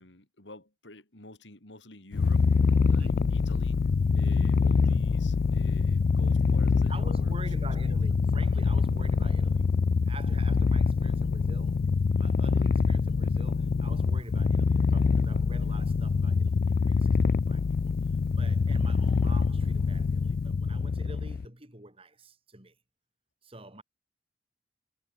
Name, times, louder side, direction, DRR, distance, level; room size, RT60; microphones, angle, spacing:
voice 1, 0.0-2.5 2.9-3.8 4.1-7.7 8.1-8.3, left 1 dB, 75° left, 4.9 m, -49 dB
Purr, 2.1-21.5, left 5 dB, 55° left, 0.3 m, -25 dB
voice 2, 3.0-3.5 4.7-5.1 6.9-11.9 12.2-17.9 18.3-22.7 23.4-23.8, right 1 dB, 30° right, 4.9 m, -45 dB
head